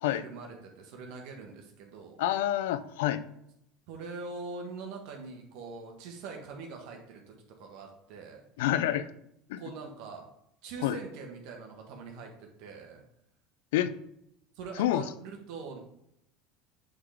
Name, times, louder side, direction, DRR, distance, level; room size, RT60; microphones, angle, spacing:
voice 1, 0.1-2.2 3.9-8.4 9.6-10.3 10.6-13.0 14.5-15.8, right 4 dB, 70° right, 2 dB, 1.2 m, -43 dB
voice 2, 2.2-3.2 8.6-9.1 9.5-9.6 10.8-11.0 13.7-13.9 14.8-15.0, left 12 dB, 85° left, 13 dB, 0.4 m, -27 dB
7.9 x 3.9 x 3.4 m, 0.77 s
supercardioid pair, 100°, 0 cm